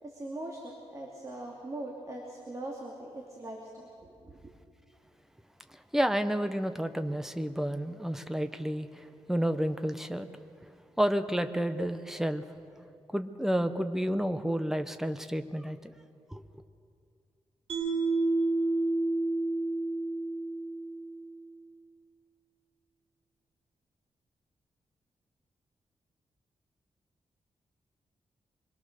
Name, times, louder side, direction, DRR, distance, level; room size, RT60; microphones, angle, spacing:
voice 1, 0.0-4.5, right 1 dB, 30° right, -1 dB, 2.6 m, -41 dB
voice 2, 5.9-10.3 11.0-12.4 13.1-15.9 16.3-16.4, equal, 5° right, 9 dB, 0.9 m, -30 dB
Mallet percussion, 17.7-21.0, right 2 dB, 70° right, 6.2 m, -29 dB
25.5 x 22.5 x 6.7 m, 2.4 s
wide cardioid pair, 160°, 11 cm